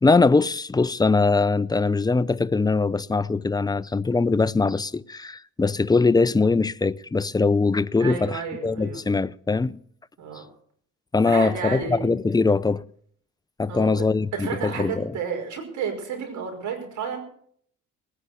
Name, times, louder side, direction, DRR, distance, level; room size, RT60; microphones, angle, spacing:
voice 1, 0.0-9.8 11.1-12.8 13.6-15.1, left 3 dB, 15° left, 0.6 m, -22 dB
voice 2, 8.0-9.0 10.2-10.5 11.3-12.0 13.7-14.0 14.3-17.2, right 6 dB, 70° right, 5.4 m, -31 dB
19.5 x 9.9 x 6.9 m
cardioid pair, 90°, 30 cm